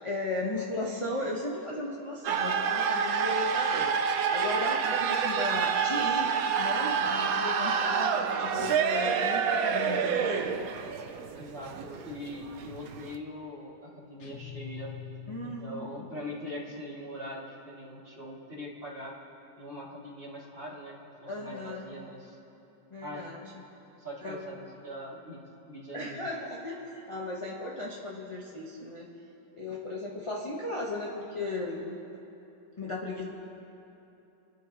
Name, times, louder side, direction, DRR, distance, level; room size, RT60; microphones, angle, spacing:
voice 1, 0.0-6.3 6.6-10.5 15.3-16.0 21.3-21.9 22.9-23.4 24.2-24.4 25.9-29.1 29.6-32.0 32.8-33.2, left 2 dB, 25° left, -3 dB, 0.8 m, -36 dB
sound 1, 2.2-13.2, right 6 dB, 65° right, 0.9 m, -28 dB
voice 2, 11.4-14.9 15.4-19.1 19.6-22.4 23.0-23.3 24.0-26.3, left 1 dB, 30° right, -6 dB, 2.5 m, -42 dB
sound 2, 14.2-16.2, left 9 dB, 45° left, 1.1 m, -44 dB
29.0 x 10.5 x 3.0 m, 3.0 s
omnidirectional pair, 2.0 m